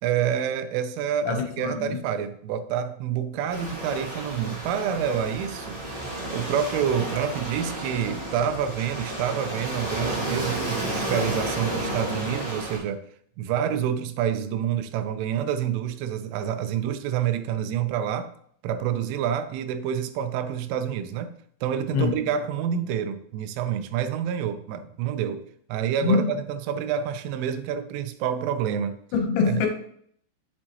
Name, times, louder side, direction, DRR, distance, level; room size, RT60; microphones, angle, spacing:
voice 1, 0.0-5.8 6.3-13.0 13.4-18.3 18.6-21.3 21.6-25.4 25.7-29.0 29.4-29.7, right 8 dB, 85° right, 10 dB, 3.0 m, -28 dB
voice 2, 1.3-2.0 21.9-22.1 26.0-26.2 29.1-29.7, left 5 dB, 75° left, 3 dB, 3.4 m, -23 dB
Waves surf, 3.5-12.8, right 1 dB, 15° right, 1.7 m, -32 dB
7.8 x 7.6 x 3.0 m, 0.63 s
omnidirectional pair, 5.7 m